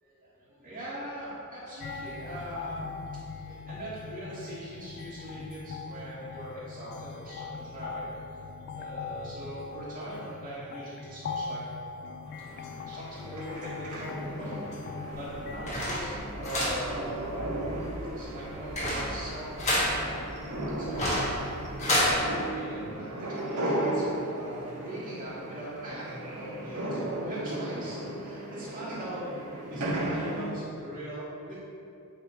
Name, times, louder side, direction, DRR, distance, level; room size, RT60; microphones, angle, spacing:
voice 1, 0.2-2.8 3.3-8.3 8.7-11.6 11.9-14.6 15.1-17.8 18.1-20.0 20.8-31.6, right 1 dB, 40° right, -12 dB, 1.5 m, -41 dB
sound 1, 1.8-15.7, left 4 dB, 50° left, 0.3 m, -41 dB
sound 2, 12.3-30.5, right 1 dB, 90° right, 1.5 m, -36 dB
sound 3, 15.1-22.2, equal, 30° left, 1.3 m, -31 dB
9.4 x 3.4 x 4.2 m, 2.6 s
head